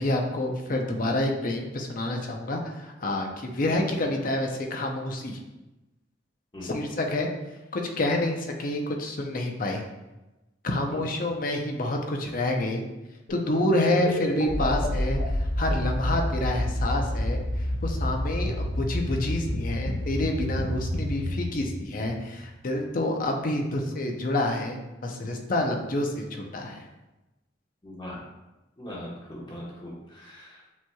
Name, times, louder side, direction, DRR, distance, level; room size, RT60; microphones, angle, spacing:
voice 1, 0.0-5.4 6.6-7.3 7.7-9.8 10.6-12.8 13.3-26.8, left 1 dB, 45° left, 2 dB, 0.6 m, -28 dB
sound 1, 13.3-22.6, left 1 dB, 85° left, 0.7 m, -29 dB
voice 2, 27.8-28.2 28.8-30.7, left 1 dB, 25° left, -5 dB, 1.2 m, -40 dB
7.2 x 2.9 x 2.3 m, 1.0 s
head